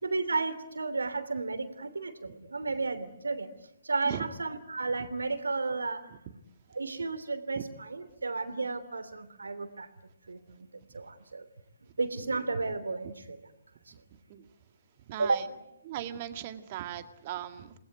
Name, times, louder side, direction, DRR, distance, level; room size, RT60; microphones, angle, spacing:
voice 1, 0.0-3.5 3.8-6.1 6.7-9.9 10.3-10.7 10.9-11.5 12.0-13.4 15.2-15.6, right 3 dB, 70° right, 12 dB, 3.0 m, -33 dB
voice 2, 15.1-15.4 15.8-17.8, right 11 dB, 35° right, 9 dB, 2.1 m, -38 dB
28.5 x 20.0 x 9.5 m, 0.87 s
figure-of-eight pair, 135°, 0 cm